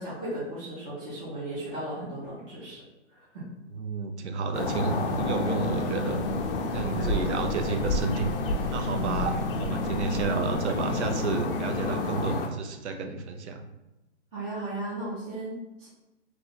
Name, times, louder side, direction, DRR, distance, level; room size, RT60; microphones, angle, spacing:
voice 1, 0.0-2.8 3.1-3.4 6.9-7.3 8.9-9.4 14.3-15.9, right 1 dB, 10° right, -11 dB, 0.4 m, -36 dB
voice 2, 3.8-6.3 6.7-8.3 8.7-13.7, right 4 dB, 70° right, 5 dB, 0.6 m, -31 dB
sound 1, 4.5-12.5, left 2 dB, 50° left, 0.5 m, -29 dB
3.1 x 2.2 x 3.9 m, 1.0 s
hypercardioid pair, 155°, 36 cm